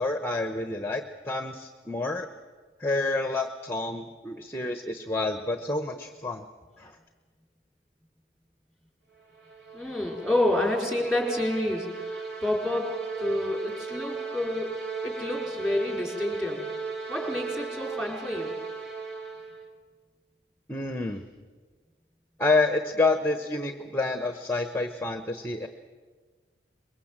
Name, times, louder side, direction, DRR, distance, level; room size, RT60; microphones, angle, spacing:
voice 1, 0.0-2.3 2.8-6.5 6.8-7.0 20.7-21.2 22.4-25.7, left 3 dB, 15° left, 7 dB, 0.9 m, -28 dB
sound 1, 9.2-19.8, right 5 dB, 70° right, 2.4 m, -36 dB
voice 2, 9.7-14.8 15.0-16.7 17.1-18.5, left 1 dB, ahead, 1 dB, 4.7 m, -29 dB
24.0 x 22.0 x 7.4 m, 1.5 s
head